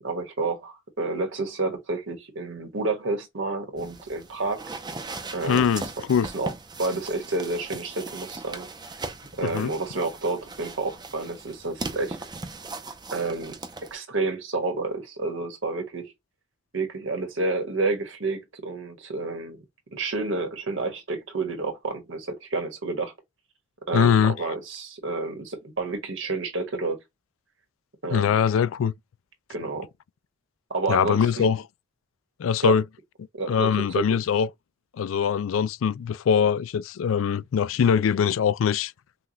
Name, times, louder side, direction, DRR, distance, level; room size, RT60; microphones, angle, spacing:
voice 1, 0.0-4.6 5.3-5.7 6.3-6.5 6.8-8.7 9.4-12.2 13.1-13.5 13.9-16.1 16.7-19.6 19.9-23.1 23.9-27.0 28.0-28.4 29.5-29.9 30.7-31.5 32.6-32.7 33.3-34.0, right 3 dB, 70° right, 1.5 m, -29 dB
sound 1, 3.8-14.0, right 3 dB, 20° right, 0.7 m, -38 dB
voice 2, 5.4-5.8 6.1-6.3 9.4-9.7 23.9-24.3 28.1-28.9 30.9-31.6 32.4-32.8 33.5-34.5 35.0-38.9, left 7 dB, 85° left, 0.3 m, -22 dB
5.8 x 2.4 x 3.0 m
head